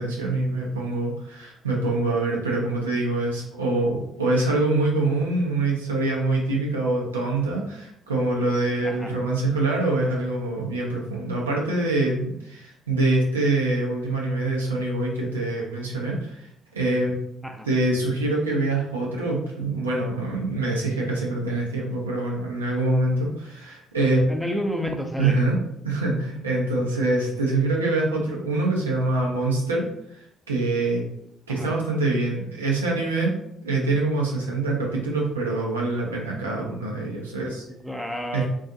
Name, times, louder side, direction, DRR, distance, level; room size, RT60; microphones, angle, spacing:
voice 1, 0.0-16.5 16.7-17.2 17.7-24.3 25.2-25.6 25.8-29.9 30.5-31.0 31.5-33.3 33.6-37.6 38.3-38.5, right 2 dB, 85° right, -2 dB, 0.4 m, -25 dB
voice 2, 24.3-25.4 31.5-31.7 37.7-38.5, equal, ahead, 3 dB, 0.5 m, -30 dB
2.5 x 2.2 x 2.5 m, 0.75 s
figure-of-eight pair, 45°, 0 cm